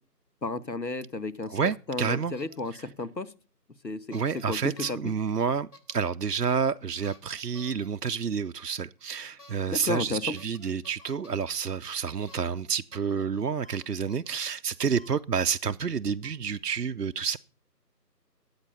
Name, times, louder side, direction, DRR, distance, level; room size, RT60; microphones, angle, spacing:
voice 1, 0.4-1.6 1.9-3.3 3.8-4.6 4.9-5.1 9.7-10.2, left 2 dB, 85° left, 1.5 m, -33 dB
voice 2, 1.5-2.3 2.7-2.9 4.1-17.4, right 6 dB, 70° right, 0.6 m, -29 dB
sound 1, 1.6-1.7 2.0-2.9 4.1-4.5 4.8-5.1 5.7-6.1 7.0-7.9 9.4-9.6 9.9-10.0 10.4-11.5 12.3-12.6 12.9-13.2 13.7-14.4, left 2 dB, 65° left, 3.7 m, -53 dB
sound 2, 11.0-11.2 12.3-12.5 13.6-13.8 14.9-15.1 16.2-16.3, left 3 dB, 35° left, 1.4 m, -53 dB
13.5 x 8.6 x 5.6 m
figure-of-eight pair, 175°, 49 cm